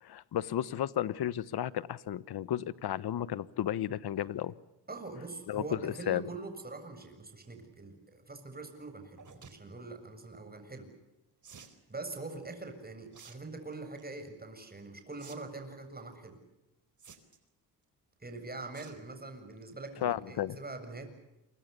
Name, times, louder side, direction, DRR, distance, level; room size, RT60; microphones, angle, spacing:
voice 1, 0.0-4.5 5.5-6.2 20.0-20.6, left 11 dB, 65° left, 17 dB, 1.3 m, -33 dB
voice 2, 4.9-10.9 11.9-16.4 18.2-21.1, right 3 dB, 20° right, 6 dB, 7.3 m, -43 dB
sound 1, 9.2-9.6 11.4-11.8 13.1-13.4 13.7-14.1 15.2-15.4 15.7-15.8 17.0-17.5 18.7-19.0 19.4-19.6 20.0-20.1 20.3-20.4, right 6 dB, 45° right, 4.3 m, -52 dB
28.0 x 24.5 x 6.9 m, 0.94 s
cardioid pair, 80°, 41 cm